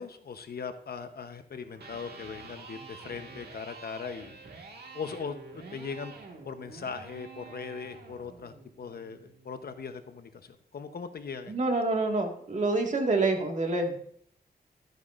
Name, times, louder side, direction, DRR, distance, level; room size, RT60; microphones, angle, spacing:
voice 1, 0.0-4.4 4.9-6.1 6.4-11.5, left 5 dB, 65° left, 8 dB, 0.9 m, -39 dB
Electric guitar, 1.7-9.7, right 4 dB, 75° right, 1.8 m, -48 dB
voice 2, 11.5-14.0, right 3 dB, 45° right, 2 dB, 1.8 m, -27 dB
12.5 x 9.1 x 2.5 m, 0.66 s
wide cardioid pair, 115°, 17 cm